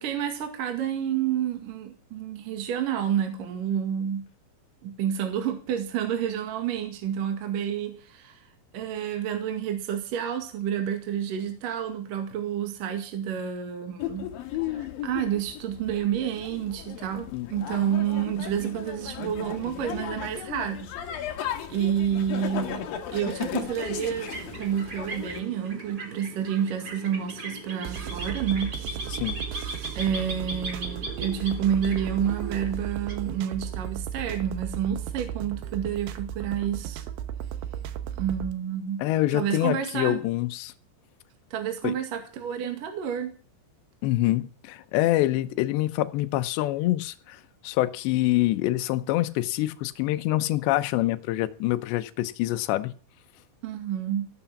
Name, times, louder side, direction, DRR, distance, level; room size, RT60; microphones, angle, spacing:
voice 1, 0.0-4.2 4.8-8.4 8.7-14.3 14.7-21.2 21.7-22.8 23.1-28.7 29.9-37.0 38.2-39.0 39.3-40.2 41.5-43.3 53.6-54.3, right 9 dB, 55° right, 6 dB, 3.1 m, -29 dB
sound 1, 14.0-25.4, left 10 dB, 60° left, 3.0 m, -36 dB
voice 2, 17.3-17.8 29.1-29.4 39.0-40.7 41.8-41.9 44.0-52.9, left 16 dB, 75° left, 12 dB, 2.9 m, -26 dB
sound 2, 23.5-33.9, right 2 dB, 20° right, 3.8 m, -38 dB
sound 3, 27.8-38.5, right 10 dB, 75° right, 2.8 m, -35 dB
15.5 x 12.0 x 7.2 m, 0.40 s
omnidirectional pair, 5.5 m